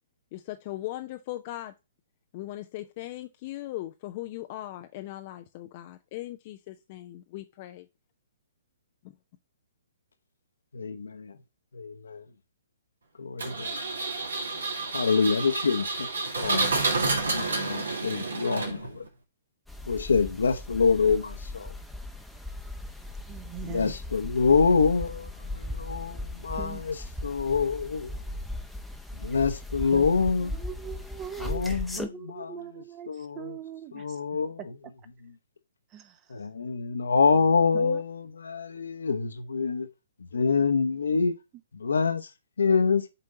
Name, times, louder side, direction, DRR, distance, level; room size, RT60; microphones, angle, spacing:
voice 1, 0.3-1.7 2.3-7.8 9.0-9.2, left 15 dB, 35° left, 0.5 m, -39 dB
voice 2, 10.7-11.3 11.7-12.2 13.2-13.7 14.9-16.1 16.4-16.8 17.1-19.0 19.9-21.7 23.7-26.9 27.2-28.2 29.2-30.5 31.4-32.0 32.4-32.5 33.1-33.4 33.9-34.6 36.3-39.9 40.3-41.3 41.8-42.3 42.6-43.0, left 5 dB, 65° left, 1.0 m, -26 dB
Engine, 13.4-19.1, right 3 dB, 65° right, 1.9 m, -29 dB
sound 1, 19.7-32.1, left 1 dB, ahead, 0.9 m, -38 dB
voice 3, 23.3-24.0 26.6-26.8 29.9-30.1 30.4-31.6 32.0-34.7 35.9-36.3 37.7-38.0, right 9 dB, 25° right, 0.9 m, -41 dB
6.9 x 4.4 x 5.0 m
figure-of-eight pair, 120°, 0 cm